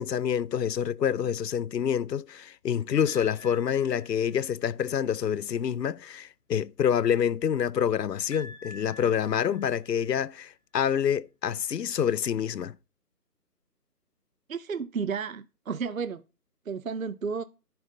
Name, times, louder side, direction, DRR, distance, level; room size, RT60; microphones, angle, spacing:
voice 1, 0.0-12.7, left 8 dB, 90° left, 0.6 m, -27 dB
sound 1, 3.1-4.7 8.3-10.3, left 1 dB, 50° left, 2.9 m, -48 dB
voice 2, 14.5-16.2 16.7-17.4, right 5 dB, 60° right, 0.6 m, -32 dB
10.0 x 5.5 x 3.9 m
figure-of-eight pair, 170°, 47 cm